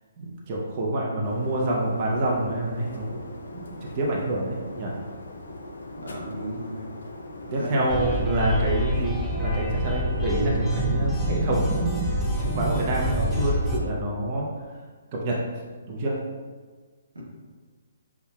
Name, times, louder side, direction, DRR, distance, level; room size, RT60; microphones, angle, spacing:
voice 1, 0.2-3.1 3.5-3.7 3.9-5.0 7.5-12.1 12.4-14.4 15.1-15.4 15.9-16.2, right 1 dB, 40° right, -3 dB, 0.6 m, -27 dB
sound 1, 1.2-13.9, left 2 dB, 75° left, 0.4 m, -41 dB
voice 2, 6.0-6.9 7.5-8.2 17.1-17.2, equal, 90° right, -2 dB, 0.9 m, -35 dB
sound 2, 7.9-13.8, equal, 5° left, 0.4 m, -27 dB
5.4 x 2.3 x 2.2 m, 1.5 s
hypercardioid pair, 140°, 0 cm